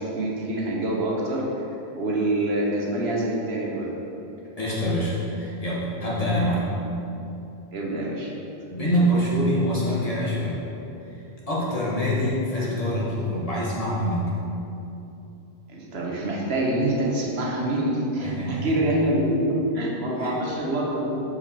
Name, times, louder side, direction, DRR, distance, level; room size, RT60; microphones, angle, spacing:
voice 1, 0.0-1.5 2.0-3.9 7.7-8.3 15.7-21.2, right 1 dB, 85° right, -3 dB, 1.4 m, -25 dB
voice 2, 4.6-6.7 8.7-10.6 11.0-14.4 18.2-18.7 20.2-20.4, equal, 35° left, -6 dB, 1.5 m, -25 dB
7.1 x 5.2 x 4.2 m, 2.9 s
omnidirectional pair, 1.0 m